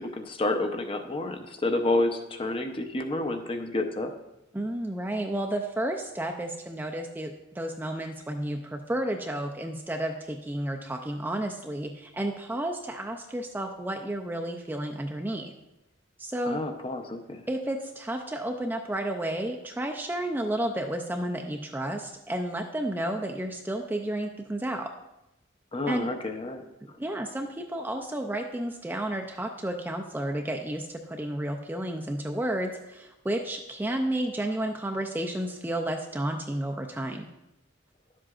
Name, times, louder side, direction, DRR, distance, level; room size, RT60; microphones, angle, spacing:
voice 1, 0.0-4.1 16.5-17.4 25.7-26.6, left 2 dB, 30° left, 5 dB, 0.6 m, -29 dB
voice 2, 4.5-15.5 16.2-16.6 17.5-24.9 25.9-26.1 27.0-37.3, right 1 dB, 10° right, 3 dB, 0.4 m, -32 dB
11.0 x 7.5 x 2.4 m, 0.92 s
head